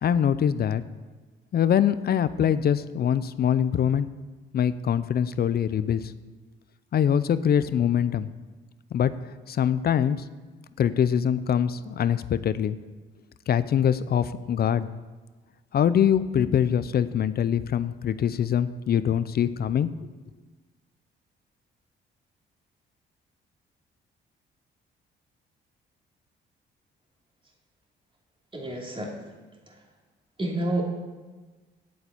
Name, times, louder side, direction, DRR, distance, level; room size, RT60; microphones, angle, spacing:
voice 1, 0.0-0.8 1.5-4.1 4.5-6.1 6.9-8.3 8.9-9.1 9.5-10.2 10.8-12.8 13.5-14.9 15.7-19.9, left 9 dB, 50° left, 14 dB, 0.6 m, -23 dB
voice 2, 28.5-29.1 30.4-30.9, right 1 dB, 25° right, 0 dB, 2.9 m, -28 dB
8.7 x 7.9 x 8.6 m, 1.3 s
cardioid pair, 90°, 20 cm